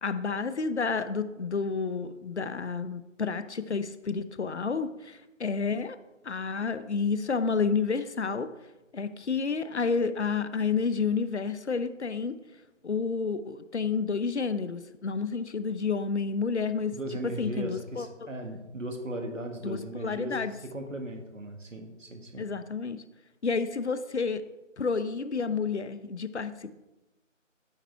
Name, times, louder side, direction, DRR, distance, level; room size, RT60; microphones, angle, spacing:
voice 1, 0.0-6.0 6.2-8.5 8.9-12.4 12.8-16.9 17.4-18.1 19.6-20.5 22.4-23.0 23.4-24.4 24.8-26.7, left 5 dB, 60° left, 12 dB, 0.8 m, -30 dB
voice 2, 16.9-20.4 20.7-22.5, right 1 dB, 75° right, 4 dB, 1.8 m, -37 dB
9.0 x 7.0 x 4.5 m, 1.0 s
figure-of-eight pair, 165°, 39 cm